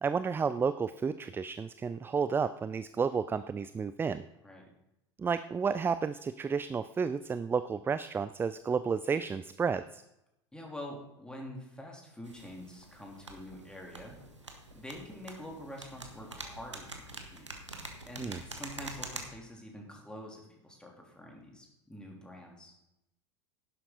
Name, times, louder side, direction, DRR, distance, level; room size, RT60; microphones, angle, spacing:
voice 1, 0.0-4.2 5.2-10.0 18.2-18.4, right 5 dB, 15° right, 13 dB, 0.4 m, -31 dB
voice 2, 10.5-14.2 14.7-17.4 18.1-22.7, left 1 dB, 5° left, -1 dB, 3.3 m, -46 dB
sound 1, 12.2-19.2, right 2 dB, 90° right, 1.4 m, -46 dB
11.5 x 11.0 x 4.0 m, 0.87 s
figure-of-eight pair, 75°, 15 cm